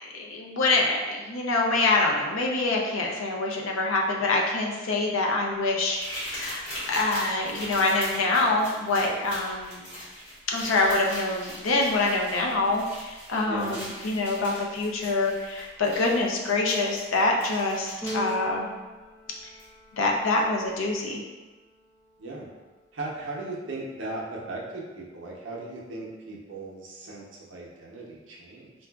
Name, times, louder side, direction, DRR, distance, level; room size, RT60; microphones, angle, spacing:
voice 1, 0.0-6.6 6.9-9.9 10.5-18.7 19.9-21.2, left 2 dB, 80° left, -1 dB, 0.5 m, -25 dB
sound 1, 6.0-18.3 19.6-19.7 20.3-20.4, equal, 60° left, 1.5 m, -40 dB
voice 2, 13.5-13.8 22.2-22.5 22.9-28.7, right 2 dB, 65° right, -3 dB, 0.6 m, -37 dB
Keyboard (musical), 18.0-20.1, equal, 15° left, 0.4 m, -37 dB
3.9 x 2.3 x 2.2 m, 1.2 s
head